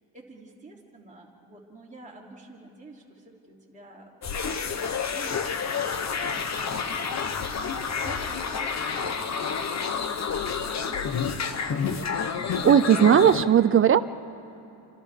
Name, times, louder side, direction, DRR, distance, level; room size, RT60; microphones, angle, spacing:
voice 1, 0.0-4.1 4.7-7.0 7.3-11.8, right 2 dB, 15° right, -3 dB, 3.0 m, -49 dB
sound 1, 4.2-13.4, left 6 dB, 35° left, 1.0 m, -29 dB
Wind instrument woodwind instrument, 5.6-9.9, left 3 dB, 55° left, 3.7 m, -52 dB
voice 2, 12.6-14.0, right 9 dB, 30° right, 14 dB, 0.4 m, -17 dB
29.0 x 26.5 x 3.6 m, 2.9 s
cardioid pair, 150°, 48 cm